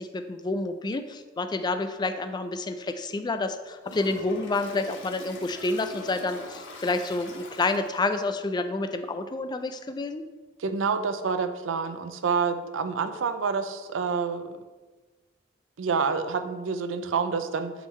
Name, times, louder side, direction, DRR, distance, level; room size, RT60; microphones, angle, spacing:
voice 1, 0.0-10.2, left 2 dB, 25° left, 8 dB, 0.3 m, -29 dB
Toilet flush, 3.8-8.2, left 2 dB, 70° left, 0.9 m, -43 dB
voice 2, 10.6-14.5 15.8-17.7, right 5 dB, 90° right, 9 dB, 0.5 m, -28 dB
8.0 x 3.7 x 3.1 m, 1.3 s
head